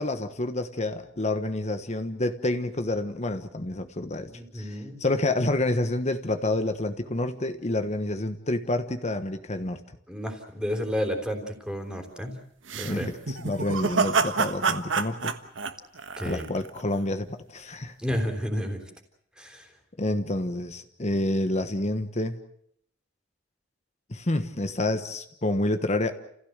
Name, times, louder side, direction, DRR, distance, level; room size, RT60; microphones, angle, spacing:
voice 1, 0.0-9.8 12.8-15.4 16.2-17.9 20.0-22.4 24.1-26.1, left 2 dB, 35° left, 8 dB, 1.3 m, -28 dB
voice 2, 4.3-5.0 10.1-12.3 12.7-13.1 16.2-16.5 18.0-18.8 19.4-19.7, equal, 5° right, 4 dB, 3.8 m, -31 dB
sound 1, 12.7-16.8, right 4 dB, 75° right, 1.5 m, -27 dB
29.5 x 16.0 x 8.1 m, 0.71 s
head